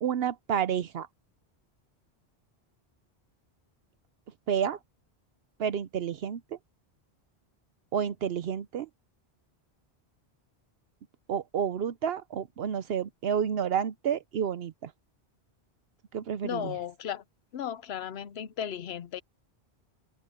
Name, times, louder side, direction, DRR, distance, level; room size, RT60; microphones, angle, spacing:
voice 1, 0.0-1.1 4.5-4.8 5.6-6.6 7.9-8.9 11.3-14.9 16.1-16.7, right 8 dB, 70° right, 0.9 m, -30 dB
voice 2, 16.4-17.2 17.5-19.2, left 9 dB, 75° left, 1.0 m, -35 dB
omnidirectional pair, 1.1 m